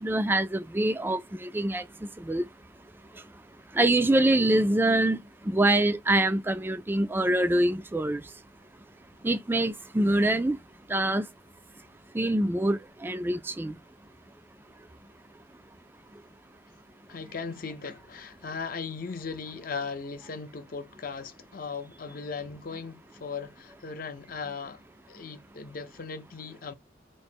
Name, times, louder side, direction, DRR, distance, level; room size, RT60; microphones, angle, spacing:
voice 1, 0.0-1.8 2.3-2.4 3.8-5.2 5.5-8.2 9.2-10.6 10.9-11.2 12.1-13.7, right 1 dB, 10° right, 0.3 m, -25 dB
voice 2, 17.1-24.8 25.1-26.7, left 5 dB, 50° left, 0.6 m, -38 dB
3.1 x 2.1 x 4.2 m
head